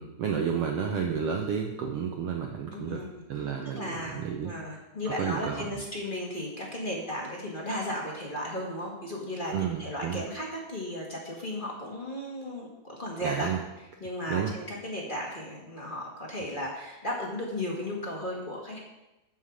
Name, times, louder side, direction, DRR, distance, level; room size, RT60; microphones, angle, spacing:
voice 1, 0.0-3.0 3.3-4.5 5.2-5.8 9.5-10.2 13.2-13.6 14.3-14.5, right 7 dB, 85° right, 2 dB, 1.3 m, -31 dB
voice 2, 2.7-3.2 3.7-13.5 14.0-18.8, left 1 dB, 20° left, -3 dB, 1.3 m, -35 dB
13.0 x 5.7 x 4.9 m, 0.98 s
omnidirectional pair, 3.7 m